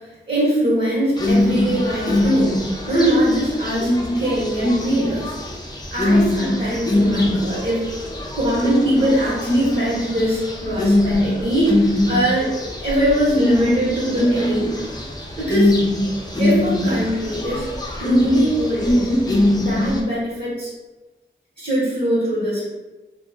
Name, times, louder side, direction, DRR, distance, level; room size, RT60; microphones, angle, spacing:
voice 1, 0.0-2.6 2.9-5.4 5.9-8.0 8.3-12.6 12.8-14.7 15.4-15.7 16.4-17.7 18.0-19.2 19.5-20.7 21.6-22.6, equal, 40° right, -9 dB, 1.5 m, -21 dB
sound 1, 1.2-20.0, left 1 dB, 20° left, 0.7 m, -22 dB
2.6 x 2.5 x 3.6 m, 1.1 s
cardioid pair, 50°, 20 cm